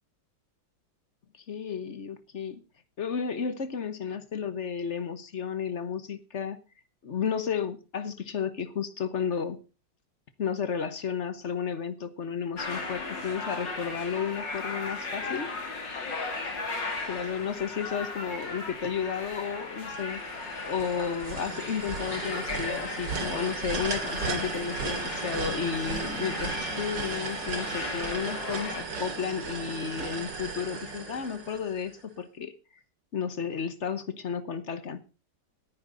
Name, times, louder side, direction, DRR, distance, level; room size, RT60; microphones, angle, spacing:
voice 1, 1.5-2.6 3.0-6.6 7.0-9.6 10.4-15.5 17.1-32.5 33.1-35.0, left 7 dB, 45° left, 13 dB, 1.3 m, -33 dB
sound 1, 12.6-28.8, left 3 dB, 80° left, 3.6 m, -37 dB
sound 2, 19.9-32.0, right 3 dB, 80° right, 2.8 m, -35 dB
18.0 x 10.5 x 3.9 m, 0.32 s
omnidirectional pair, 1.9 m